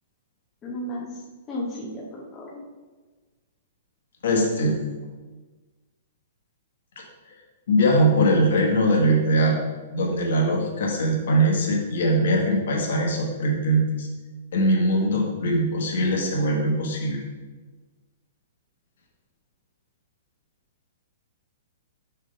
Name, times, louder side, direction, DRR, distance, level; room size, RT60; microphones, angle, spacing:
voice 1, 0.6-1.1 1.5-2.6, left 1 dB, 15° left, -5 dB, 1.0 m, -33 dB
voice 2, 4.2-4.8 7.0-7.1 7.7-9.6 9.9-14.1 14.5-17.2, right 1 dB, 65° left, 0 dB, 1.5 m, -21 dB
6.4 x 3.3 x 5.3 m, 1.3 s
hypercardioid pair, 175°, 0 cm